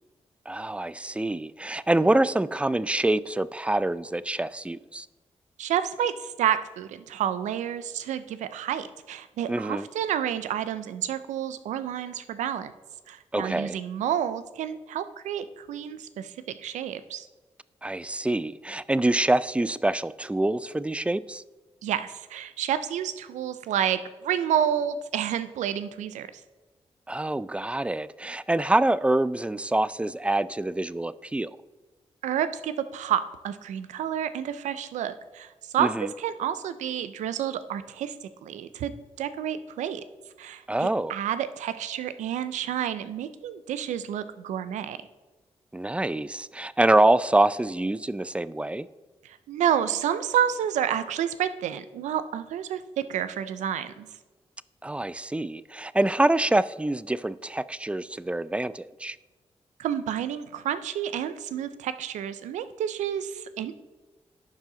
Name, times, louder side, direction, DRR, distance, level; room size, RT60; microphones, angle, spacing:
voice 1, 0.5-5.1 9.5-9.9 13.3-13.8 17.8-21.4 27.1-31.5 35.8-36.1 40.7-41.2 45.7-48.9 54.8-59.2, right 2 dB, 10° right, 0.3 m, -25 dB
voice 2, 5.6-12.7 13.1-16.3 16.6-17.2 21.8-26.3 32.2-38.1 38.4-38.9 39.2-40.0 40.4-45.0 49.5-54.1 59.8-63.7, right 9 dB, 85° right, 0.5 m, -29 dB
11.0 x 4.8 x 3.8 m
supercardioid pair, 45°, 12 cm